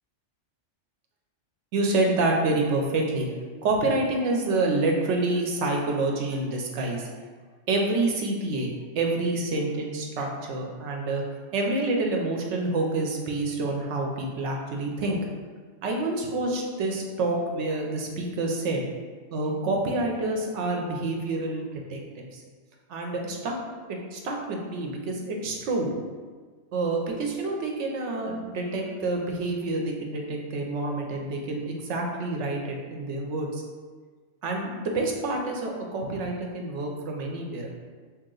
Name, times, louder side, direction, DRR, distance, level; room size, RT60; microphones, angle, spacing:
voice 1, 1.7-3.3 3.6-7.1 7.7-11.2 11.5-15.2 15.8-18.8 19.3-22.4 22.9-23.6 24.1-25.9 26.7-33.6 34.4-37.7, right 2 dB, 75° right, 1 dB, 0.9 m, -28 dB
2.9 x 2.9 x 3.8 m, 1.5 s
omnidirectional pair, 1.2 m